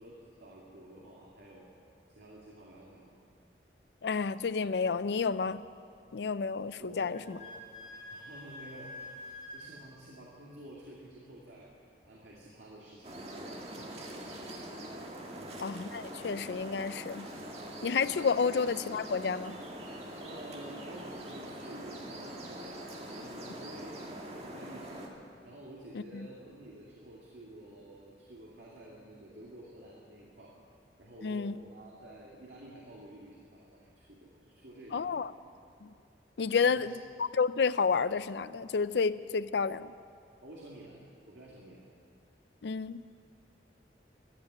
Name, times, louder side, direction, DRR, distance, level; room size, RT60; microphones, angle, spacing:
voice 1, 0.0-1.7 2.2-3.2 6.8-7.6 8.1-11.7 12.0-14.5 15.3-15.6 20.2-25.1 25.4-30.6 31.0-35.2 36.5-36.9 40.4-41.9, right 1 dB, 80° right, -4 dB, 2.3 m, -50 dB
voice 2, 4.0-5.6 6.1-7.4 15.6-17.3 17.8-19.6 25.9-26.3 31.2-31.6 34.9-35.3 35.8-35.9 36.4-39.9 42.6-43.0, left 5 dB, 70° left, 15 dB, 0.4 m, -30 dB
Wind instrument woodwind instrument, 7.1-9.7, left 2 dB, 40° left, 2.9 m, -46 dB
sound 1, 13.0-25.1, right 1 dB, 35° right, 1.8 m, -43 dB
14.5 x 10.5 x 9.2 m, 2.4 s
head